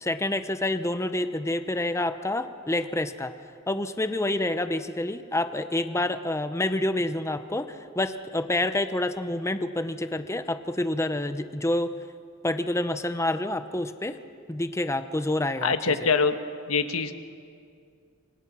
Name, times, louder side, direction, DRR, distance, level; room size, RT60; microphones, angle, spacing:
voice 1, 0.0-3.3 3.7-11.9 12.4-14.2 14.5-15.9, left 1 dB, 15° left, 10 dB, 0.8 m, -28 dB
voice 2, 15.6-16.4 16.7-17.1, left 5 dB, 70° left, 8 dB, 1.3 m, -24 dB
27.0 x 24.5 x 6.2 m, 2.3 s
head